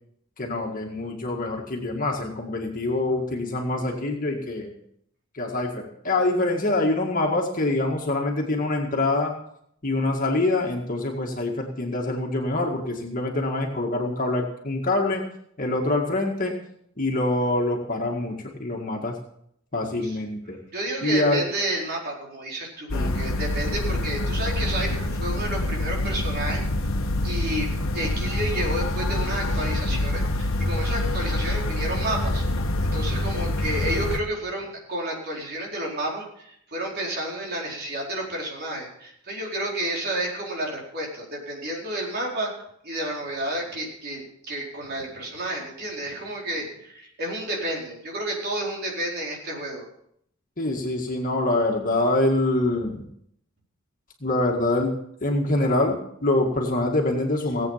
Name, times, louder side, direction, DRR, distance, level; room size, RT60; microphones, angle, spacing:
voice 1, 0.4-4.7 5.3-9.3 9.8-15.2 15.6-16.5 17.0-19.2 19.7-20.6 21.0-21.4 22.9-23.2 50.6-53.0 54.2-54.9 55.2-57.7, left 2 dB, 40° left, 1 dB, 2.0 m, -25 dB
voice 2, 20.7-26.6 27.2-32.4 32.8-42.5 42.8-49.8, right 1 dB, 50° right, -2 dB, 4.6 m, -31 dB
sound 1, 22.9-34.2, left 1 dB, 75° left, 1.3 m, -26 dB
18.0 x 8.4 x 5.7 m, 0.71 s
head